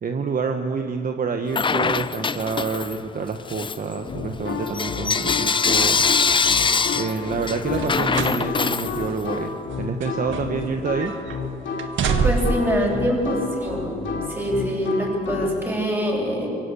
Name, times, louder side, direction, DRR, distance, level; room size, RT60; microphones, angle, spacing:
voice 1, 0.0-6.0 6.9-11.1, right 5 dB, 45° right, 5 dB, 1.3 m, -27 dB
Bell / Coin (dropping), 1.5-3.1 3.5-9.4, left 5 dB, 25° left, 0.5 m, -23 dB
sound 1, 4.1-15.5, left 5 dB, 70° left, 3.0 m, -30 dB
sound 2, 7.7-8.4 8.8-9.0 9.7-10.7 11.0-11.4 11.8-12.7 13.6-13.7, right 5 dB, 75° right, 1.6 m, -25 dB
voice 2, 12.2-14.0 14.3-16.5, equal, 10° right, -1 dB, 7.9 m, -24 dB
24.0 x 16.5 x 8.5 m, 2.7 s
cardioid pair, 90°, 20 cm